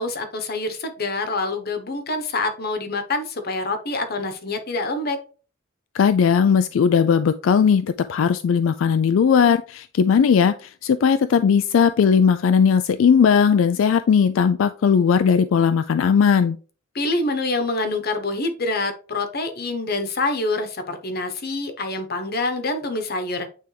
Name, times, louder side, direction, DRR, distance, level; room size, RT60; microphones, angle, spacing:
voice 1, 0.0-5.2 16.9-23.5, left 2 dB, 50° left, 7 dB, 1.0 m, -26 dB
voice 2, 5.9-16.6, left 6 dB, 80° left, 11 dB, 0.3 m, -18 dB
9.0 x 3.4 x 3.3 m, 0.38 s
head